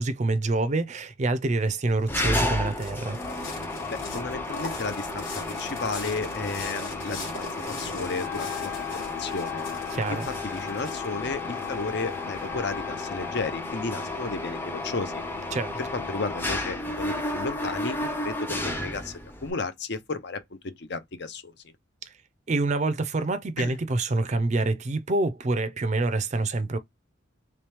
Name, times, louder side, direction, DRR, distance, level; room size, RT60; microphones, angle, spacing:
voice 1, 0.0-3.2 9.9-10.2 15.5-15.8 22.5-26.8, right 2 dB, 35° right, 0.4 m, -26 dB
sound 1, 1.6-12.4, left 3 dB, 90° left, 1.4 m, -41 dB
Mechanisms, 2.1-19.5, left 2 dB, 10° left, 0.6 m, -32 dB
voice 2, 3.9-9.7 10.1-15.2 15.8-21.5 23.6-23.8, left 3 dB, 55° left, 0.7 m, -33 dB
Wind instrument woodwind instrument, 8.0-13.7, left 14 dB, 70° left, 1.1 m, -38 dB
3.1 x 3.0 x 3.3 m
head